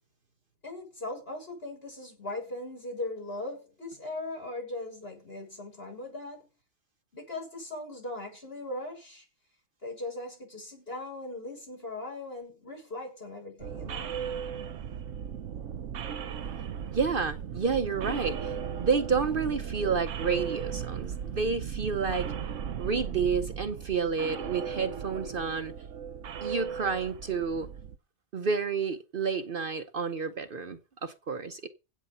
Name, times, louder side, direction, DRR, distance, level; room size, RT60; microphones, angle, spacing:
voice 1, 0.6-6.4 7.1-9.3 9.8-14.1, left 2 dB, 55° left, 7.1 m, -39 dB
sound 1, 13.6-28.0, right 8 dB, 90° right, 1.1 m, -36 dB
voice 2, 16.9-22.3 22.8-25.7 26.4-27.7 28.3-31.7, right 5 dB, 50° right, 0.9 m, -30 dB
16.0 x 7.3 x 5.5 m
omnidirectional pair, 1.2 m